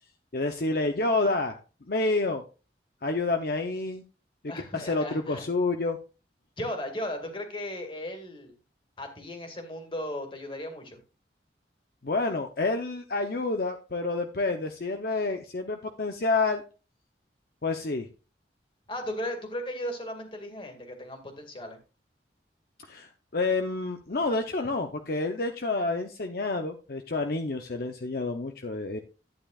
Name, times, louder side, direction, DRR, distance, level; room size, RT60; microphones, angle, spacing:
voice 1, 0.3-1.6 1.9-2.4 3.0-4.0 4.6-6.0 12.0-16.6 17.6-18.1 22.8-29.0, left 3 dB, 55° left, 5 dB, 0.7 m, -29 dB
voice 2, 4.5-5.4 6.6-8.5 9.0-11.0 18.9-21.8, left 1 dB, 30° left, 4 dB, 2.1 m, -36 dB
11.5 x 9.2 x 2.4 m, 0.34 s
head